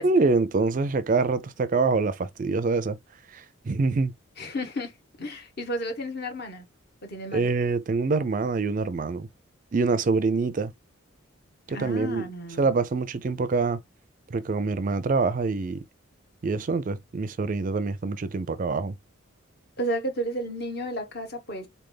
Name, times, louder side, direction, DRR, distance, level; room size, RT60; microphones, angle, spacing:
voice 1, 0.0-3.0 3.3-4.1 7.3-9.3 9.7-10.7 11.7-12.2 12.6-13.8 14.3-15.8 16.4-19.0, right 4 dB, 40° right, 0.4 m, -25 dB
voice 2, 4.4-4.9 5.2-6.6 7.0-7.5 11.7-12.7 19.8-21.7, equal, 50° left, 1.1 m, -32 dB
4.1 x 3.3 x 3.8 m
head